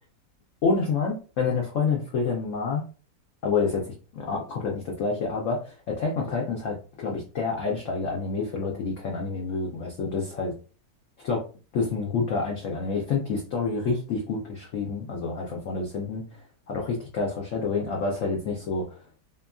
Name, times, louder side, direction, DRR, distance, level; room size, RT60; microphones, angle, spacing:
voice 1, 0.6-2.8 3.4-10.5 11.2-11.4 11.7-16.2 16.7-19.0, left 4 dB, 65° left, -2 dB, 0.8 m, -28 dB
2.8 x 2.4 x 2.2 m, 0.36 s
omnidirectional pair, 1.7 m